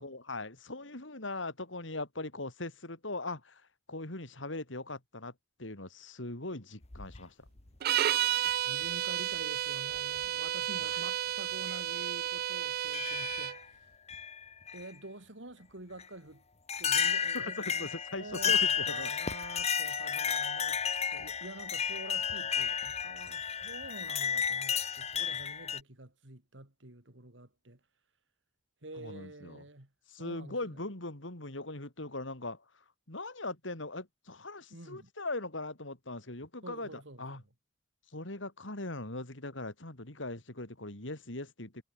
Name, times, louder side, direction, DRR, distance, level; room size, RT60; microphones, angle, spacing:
voice 1, 0.0-5.3 5.6-7.3 10.8-10.9 17.3-19.1 29.0-29.6 30.1-37.4 38.1-41.8, left 2 dB, 85° left, 4.0 m, -40 dB
sound 1, 6.8-7.7 8.8-8.9 10.0-10.3 10.9-11.0 11.7-11.8 12.9-13.6 14.1-14.9 16.0-16.1 16.7-25.8, left 7 dB, 35° left, 1.3 m, -32 dB
sound 2, 7.8-13.6, right 12 dB, 55° right, 0.3 m, -32 dB
voice 2, 8.6-13.9 14.7-16.4 16.8-17.9 18.1-20.8 21.1-27.8 28.8-29.9 30.2-30.8 34.7-35.1 36.6-37.4, right 2 dB, 75° right, 3.2 m, -48 dB
head